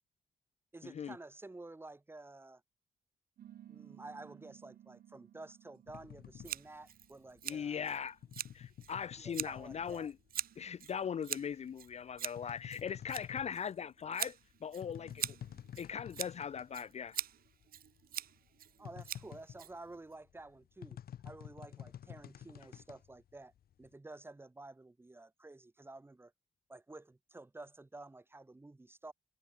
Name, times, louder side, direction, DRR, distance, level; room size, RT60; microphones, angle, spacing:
voice 1, 0.7-2.6 3.7-7.8 9.2-10.1 18.8-23.5 23.8-26.3 26.7-29.1, right 2 dB, 15° right, 2.4 m, -51 dB
sound 1, 3.4-8.3, right 11 dB, 90° right, 1.5 m, -58 dB
sound 2, 5.9-10.6 10.9-16.8 17.1-17.2 17.5-23.9, left 10 dB, 75° left, 2.1 m, -51 dB
Scissors, 6.4-20.2, right 10 dB, 70° right, 0.7 m, -44 dB
voice 2, 7.4-8.2 8.5-10.1 10.6-15.4 15.8-17.2, left 7 dB, 45° left, 0.6 m, -40 dB
wide cardioid pair, 155°, 16 cm